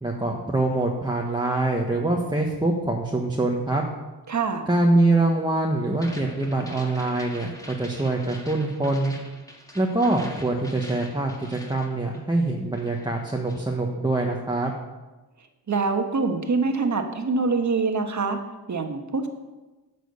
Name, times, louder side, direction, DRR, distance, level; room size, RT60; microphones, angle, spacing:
voice 1, 0.0-3.8 4.7-9.2 9.7-14.7, right 2 dB, 10° right, -1 dB, 1.3 m, -24 dB
voice 2, 4.3-4.6 15.7-18.4 18.7-19.3, right 4 dB, 45° right, 5 dB, 1.5 m, -24 dB
sound 1, 5.9-12.5 12.7-13.7, equal, 10° left, 2.0 m, -44 dB
10.0 x 6.3 x 6.8 m, 1.2 s
cardioid pair, 65°, 40 cm